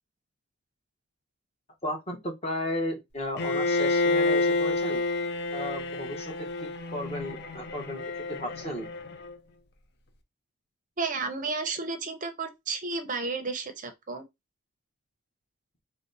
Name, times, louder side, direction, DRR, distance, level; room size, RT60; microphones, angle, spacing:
voice 1, 1.8-5.0 5.5-8.0 8.3-8.9, left 1 dB, 30° left, 1.0 m, -34 dB
Bowed string instrument, 3.4-9.3, left 3 dB, 50° left, 0.6 m, -29 dB
voice 2, 11.0-14.2, right 4 dB, 35° right, 0.6 m, -32 dB
3.9 x 2.1 x 3.9 m
head